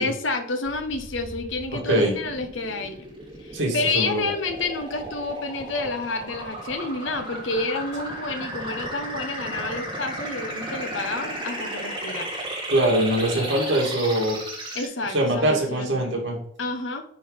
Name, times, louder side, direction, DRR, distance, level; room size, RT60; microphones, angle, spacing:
voice 1, 0.0-3.0 3.4-12.3 14.7-16.0 16.6-17.0, left 3 dB, 65° left, 7 dB, 1.0 m, -29 dB
sound 1, 0.7-14.9, right 1 dB, 25° right, 2.6 m, -35 dB
voice 2, 1.7-2.2 3.5-4.3 12.7-14.4 15.1-16.4, right 1 dB, 60° right, 0 dB, 2.4 m, -23 dB
9.7 x 3.8 x 5.2 m, 0.68 s
head